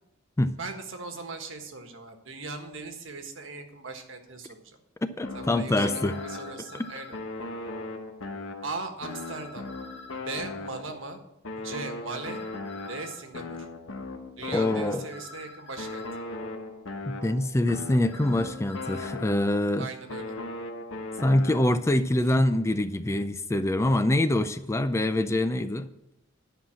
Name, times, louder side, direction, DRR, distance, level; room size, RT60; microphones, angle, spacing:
voice 1, 0.6-4.8 5.3-7.2 8.6-9.7 10.1-11.2 11.6-12.4 12.9-13.7 14.4-16.0 19.8-20.4 22.2-22.3, right 3 dB, 70° right, 5 dB, 1.5 m, -39 dB
sound 1, 5.2-6.8 7.1-11.1 11.4-15.3 15.8-19.7 20.1-21.9, left 2 dB, 90° left, 1.2 m, -38 dB
voice 2, 5.2-6.2 14.5-15.0 17.1-19.9 21.2-25.9, left 1 dB, 15° left, 11 dB, 0.4 m, -25 dB
sound 2, 6.1-7.2 9.1-10.2 12.1-13.2 15.1-16.2 18.1-19.1, left 3 dB, 65° left, 2.1 m, -46 dB
10.5 x 5.7 x 7.3 m, 0.83 s
head